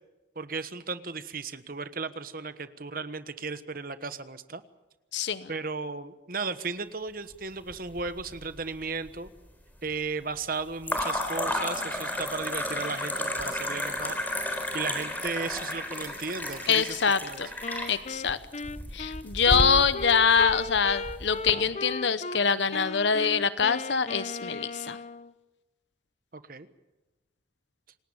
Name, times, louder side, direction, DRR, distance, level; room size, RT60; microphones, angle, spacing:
voice 1, 0.3-4.6 5.5-9.3 9.8-14.2 14.7-17.4 26.3-26.7, right 4 dB, 50° right, 11 dB, 1.3 m, -35 dB
voice 2, 5.1-5.5 16.7-17.5 17.9-18.4 18.9-25.0, left 6 dB, 75° left, 13 dB, 0.9 m, -24 dB
sound 1, 7.7-8.5 8.7-9.4 10.8-21.5, left 1 dB, 10° left, 3.8 m, -33 dB
Wind instrument woodwind instrument, 17.6-22.4 22.7-25.3, left 3 dB, 40° left, 0.7 m, -36 dB
27.5 x 18.5 x 7.2 m, 1.1 s
head